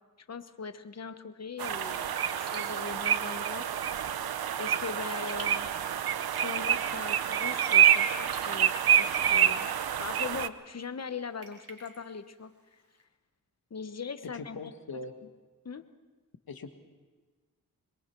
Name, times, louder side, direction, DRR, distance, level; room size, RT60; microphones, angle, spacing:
voice 1, 0.3-3.7 4.6-5.7 6.3-12.5 13.7-14.6 15.6-15.9, left 5 dB, 45° left, 10 dB, 1.1 m, -40 dB
sound 1, 1.6-10.5, right 10 dB, 80° right, 0.7 m, -27 dB
Raindrop / Drip, 2.3-13.0, right 2 dB, 40° right, 4.7 m, -53 dB
voice 2, 14.2-15.1 16.5-16.7, left 3 dB, 70° left, 7 dB, 1.8 m, -41 dB
26.0 x 22.0 x 4.6 m, 1.4 s
cardioid pair, 60°, 37 cm